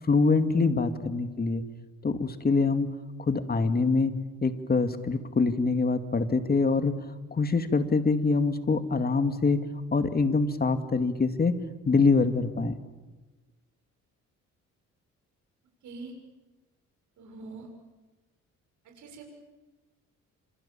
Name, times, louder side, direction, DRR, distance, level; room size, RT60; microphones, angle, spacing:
voice 1, 0.1-1.6 2.0-2.9 3.3-4.1 4.4-6.9 7.3-9.6 9.9-11.5 11.9-12.8, left 4 dB, 30° left, 9 dB, 2.4 m, -24 dB
voice 2, 17.2-17.7 18.9-19.3, right 4 dB, 75° right, 3 dB, 6.9 m, -43 dB
28.0 x 27.5 x 7.3 m, 1.2 s
cardioid pair, 90°, 30 cm